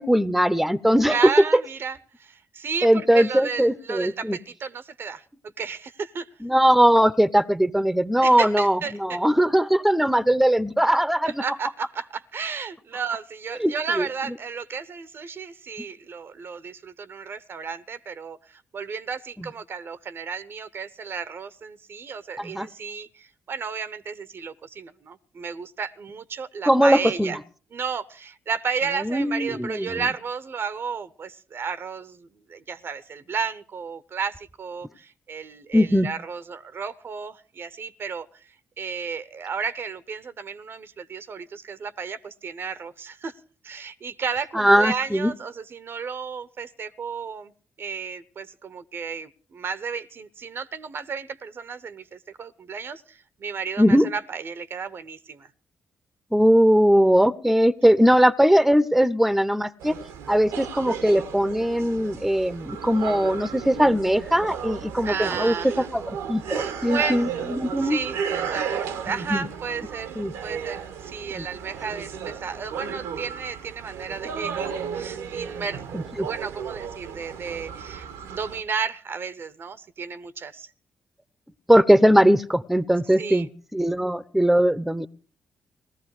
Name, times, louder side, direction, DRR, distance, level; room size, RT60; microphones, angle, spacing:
voice 1, 0.0-1.6 2.8-4.4 6.4-11.3 13.6-14.1 19.4-19.5 22.4-22.7 26.6-27.3 29.0-30.1 35.7-36.1 44.5-45.3 53.8-54.1 56.3-59.9 60.3-68.0 69.3-69.5 70.2-70.3 71.4-71.5 75.9-76.3 81.7-83.5 83.7-85.1, equal, 5° right, 0.9 m, -20 dB
voice 2, 1.1-6.3 8.2-9.2 11.2-27.4 27.7-38.3 38.8-43.3 43.6-47.5 47.8-55.5 65.0-65.9 66.5-67.3 67.8-70.1 70.4-75.8 76.2-80.7 83.2-83.5, right 5 dB, 55° right, 0.9 m, -33 dB
sound 1, 59.8-78.6, right 7 dB, 80° right, 1.0 m, -34 dB
18.0 x 14.0 x 4.8 m
hypercardioid pair, 40°, 5 cm